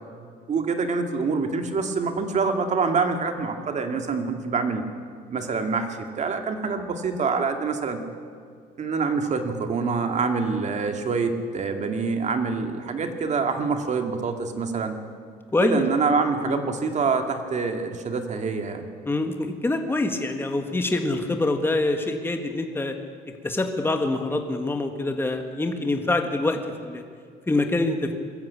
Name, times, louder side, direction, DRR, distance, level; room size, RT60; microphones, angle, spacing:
voice 1, 0.5-4.8 5.3-8.0 8.8-15.0 15.6-18.9, right 4 dB, 45° right, 5 dB, 2.2 m, -26 dB
voice 2, 15.5-15.8 16.5-16.6 19.0-22.9 23.4-27.0 27.5-28.1, left 2 dB, 15° left, 5 dB, 1.7 m, -25 dB
21.0 x 14.0 x 8.6 m, 2.1 s
cardioid pair, 110°, 17 cm